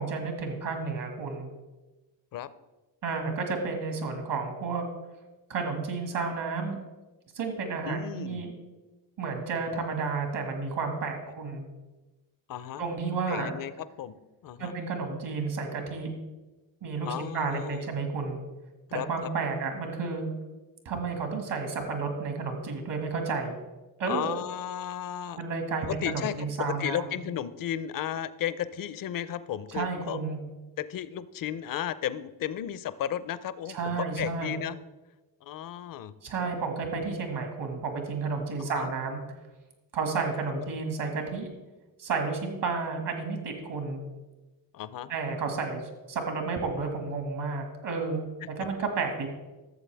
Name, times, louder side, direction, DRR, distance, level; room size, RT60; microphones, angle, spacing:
voice 1, 0.0-1.5 3.0-4.8 5.5-6.8 7.3-8.5 9.2-11.6 12.8-13.5 14.6-16.1 16.8-18.4 18.9-20.3 20.9-23.6 24.0-24.4 25.4-27.1 29.7-30.4 33.7-34.5 36.2-39.2 39.9-41.5 42.0-44.0 45.1-45.8 46.1-48.2 48.6-49.3, right 4 dB, 70° right, 4 dB, 2.0 m, -31 dB
voice 2, 7.8-8.4 12.5-12.8 13.3-13.7 14.0-14.2 14.4-14.7 17.0-17.9 18.9-19.3 24.0-25.4 25.8-30.2 30.8-34.8 35.4-36.1 36.4-36.5 38.6-38.9 40.5-40.6 44.7-45.1 48.4-48.5, left 10 dB, 50° left, 15 dB, 0.5 m, -34 dB
13.0 x 7.1 x 3.4 m, 1.1 s
cardioid pair, 90°, 44 cm